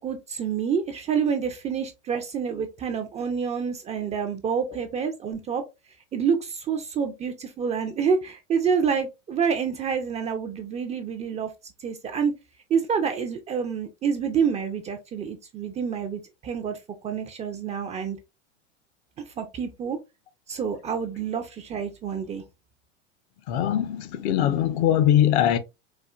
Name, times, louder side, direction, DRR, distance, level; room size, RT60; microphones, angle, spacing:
voice 1, 0.0-5.6 6.1-11.5 11.8-12.3 12.7-18.2 19.4-20.0 20.5-22.4, right 6 dB, 20° right, 0.4 m, -28 dB
voice 2, 23.5-25.6, left 11 dB, 60° left, 0.6 m, -21 dB
4.3 x 2.3 x 2.2 m
hypercardioid pair, 110°, 38 cm